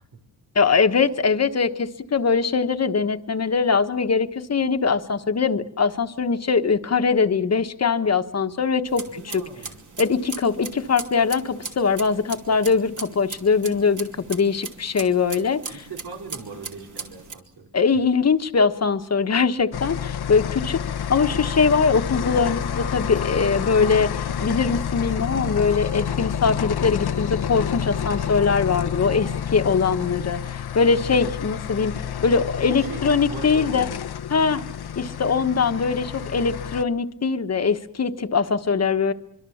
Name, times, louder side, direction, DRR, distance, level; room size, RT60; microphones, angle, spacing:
voice 1, 0.5-9.0 9.3-9.4 10.0-15.6 17.7-20.8 21.1-31.9 32.2-33.9 34.3-34.6 34.9-39.1, left 5 dB, 40° left, 9 dB, 1.3 m, -22 dB
sound 1, 8.9-17.3, right 5 dB, 55° right, 2.7 m, -38 dB
voice 2, 9.1-9.8 15.7-17.7 32.7-33.9, right 4 dB, 90° right, 3 dB, 5.2 m, -39 dB
sound 2, 19.7-36.8, left 8 dB, 85° left, 1.0 m, -29 dB
sound 3, 21.1-29.6, right 5 dB, 35° right, 3.0 m, -44 dB
25.0 x 24.5 x 7.2 m, 0.78 s
wide cardioid pair, 170°, 38 cm